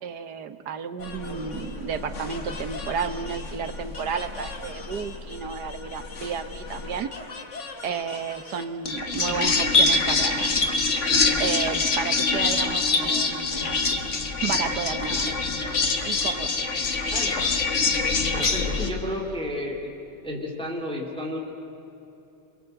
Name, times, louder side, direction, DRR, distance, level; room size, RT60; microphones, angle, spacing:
voice 1, 0.0-7.1 7.8-10.6 11.4-13.9 14.4-15.4 16.0-16.5, right 6 dB, 55° right, 10 dB, 1.5 m, -32 dB
sound 1, 1.0-18.9, left 3 dB, 35° left, 1.7 m, -26 dB
voice 2, 18.3-19.9 20.2-21.4, left 1 dB, ahead, -1 dB, 2.9 m, -31 dB
27.5 x 22.5 x 8.0 m, 2.9 s
omnidirectional pair, 2.4 m